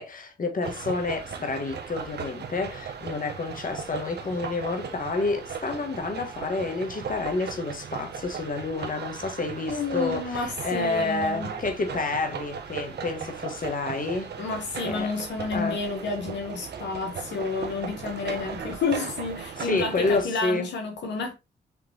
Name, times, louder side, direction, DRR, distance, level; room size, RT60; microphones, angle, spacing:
voice 1, 0.0-14.3 14.8-15.1 15.5-15.8 19.6-20.7, left 3 dB, 50° left, 1.4 m, -29 dB
sound 1, 0.6-20.2, right 6 dB, 70° right, 0.9 m, -37 dB
voice 2, 9.7-11.5 14.4-21.3, left 4 dB, 80° left, 1.0 m, -30 dB
5.8 x 3.1 x 2.8 m
cardioid pair, 55°, 18 cm